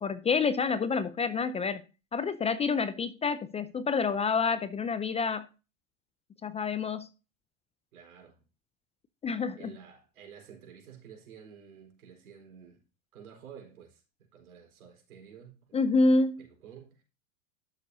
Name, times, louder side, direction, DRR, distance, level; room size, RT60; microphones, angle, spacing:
voice 1, 0.0-1.8 2.1-5.5 6.4-7.1 9.2-9.7 15.7-16.4, left 4 dB, 15° left, 0.5 m, -28 dB
voice 2, 7.9-8.4 9.3-12.8 13.1-15.8 16.4-17.0, right 7 dB, 85° right, 4.4 m, -51 dB
12.0 x 6.8 x 2.7 m
hypercardioid pair, 110°, 42 cm